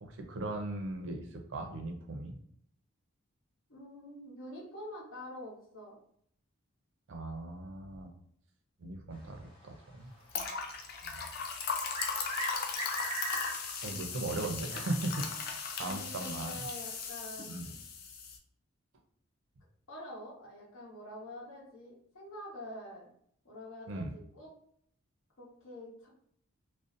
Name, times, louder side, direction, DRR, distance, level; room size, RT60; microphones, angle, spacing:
voice 1, 0.0-2.4 7.1-8.1 8.8-10.1 11.0-11.2 13.8-16.7 17.5-17.7 23.9-24.1, right 2 dB, 65° right, 4 dB, 0.5 m, -38 dB
voice 2, 3.7-6.0 13.9-14.0 15.8-17.8 19.9-23.1 23.4-24.5 25.4-26.1, left 1 dB, 75° left, -4 dB, 1.0 m, -46 dB
sound 1, 10.3-18.4, left 5 dB, 45° left, 0.3 m, -38 dB
sound 2, 11.6-13.9 14.2-14.3 15.2-15.3 16.5-16.6, right 1 dB, 25° left, 0.9 m, -38 dB
2.5 x 2.1 x 2.5 m, 0.65 s
head